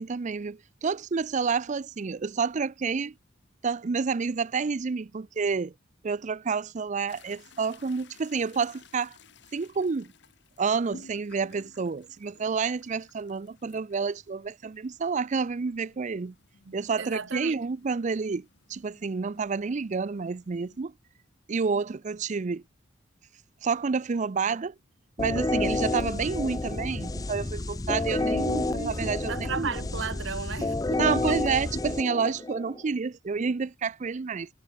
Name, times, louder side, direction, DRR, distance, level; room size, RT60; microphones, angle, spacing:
voice 1, 0.0-3.1 3.6-5.7 6.0-9.2 9.5-10.1 10.6-16.3 16.7-20.9 21.5-22.6 23.6-24.7 25.2-29.7 31.0-34.5, right 5 dB, 40° right, 0.4 m, -29 dB
sound 1, 7.1-20.8, left 4 dB, 65° left, 1.7 m, -56 dB
voice 2, 16.6-17.6 28.8-31.4, right 5 dB, 70° right, 1.1 m, -35 dB
sound 2, 25.2-32.8, left 2 dB, 20° left, 0.5 m, -30 dB
head